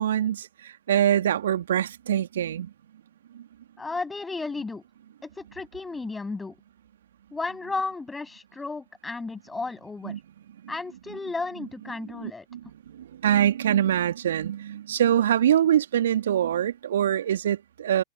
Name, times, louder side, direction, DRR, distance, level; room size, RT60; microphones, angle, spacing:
voice 1, 0.0-2.7 3.3-3.4 10.0-10.2 12.2-12.6 12.9-18.0, right 10 dB, 70° right, 3.0 m, -24 dB
voice 2, 3.8-4.8 5.2-6.6 7.3-10.2 10.7-12.4, left 3 dB, 10° left, 7.9 m, -33 dB
figure-of-eight pair, 85°, 0 cm